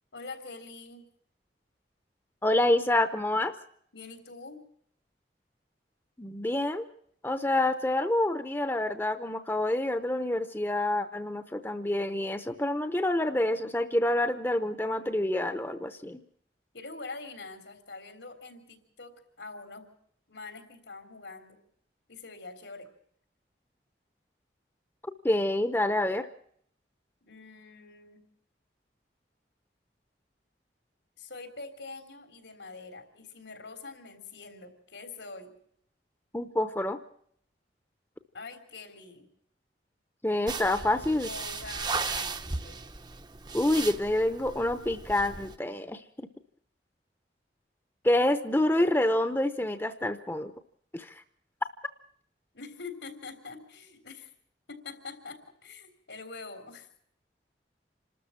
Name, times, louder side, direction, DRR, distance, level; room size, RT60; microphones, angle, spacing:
voice 1, 0.1-1.0 3.9-4.6 16.7-19.9 20.3-21.6 22.1-22.9 27.3-28.2 31.2-35.5 38.3-39.2 40.9-42.8 52.5-54.3 54.7-56.9, left 3 dB, 85° left, 7 dB, 3.6 m, -44 dB
voice 2, 2.4-3.5 6.2-6.8 7.2-16.2 25.2-26.3 36.3-37.0 40.2-41.3 43.5-46.0 48.0-50.5 50.9-51.1, left 1 dB, 10° left, 10 dB, 0.7 m, -27 dB
sound 1, 40.5-45.5, right 4 dB, 25° right, 0.7 m, -36 dB
27.0 x 13.0 x 7.3 m, 0.65 s
head